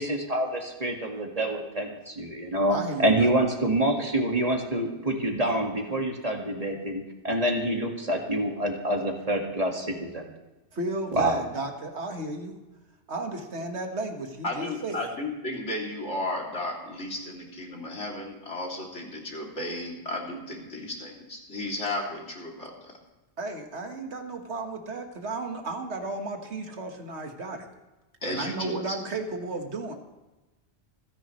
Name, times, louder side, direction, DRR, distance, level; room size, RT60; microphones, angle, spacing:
voice 1, 0.0-10.2 11.1-11.4, right 1 dB, 35° right, 2 dB, 2.0 m, -27 dB
voice 2, 2.7-3.3 10.7-12.5 13.1-15.1 23.4-27.7 28.3-29.9, right 2 dB, 75° right, 4 dB, 1.9 m, -33 dB
voice 3, 14.4-22.9 28.2-29.0, left 1 dB, 90° left, -1 dB, 3.2 m, -34 dB
27.0 x 10.5 x 3.2 m, 1.1 s
omnidirectional pair, 1.2 m